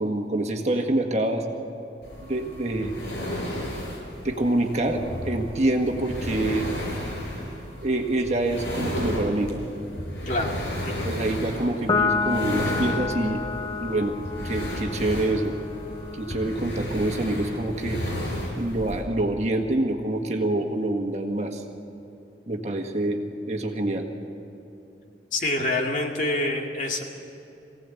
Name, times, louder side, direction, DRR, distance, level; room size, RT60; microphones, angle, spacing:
voice 1, 0.0-1.5 2.2-3.0 4.2-6.7 7.8-9.6 11.0-13.4 13.8-14.2 14.4-15.5 16.1-18.0 18.6-21.6 22.5-24.1, right 1 dB, 40° right, 3 dB, 1.7 m, -26 dB
sound 1, 2.0-19.0, equal, 85° left, 6.4 m, -33 dB
voice 2, 10.3-11.1 25.3-27.0, left 2 dB, 45° left, 1 dB, 2.3 m, -27 dB
Piano, 11.9-18.6, left 4 dB, 25° left, 0.7 m, -31 dB
24.0 x 17.0 x 8.5 m, 2.9 s
head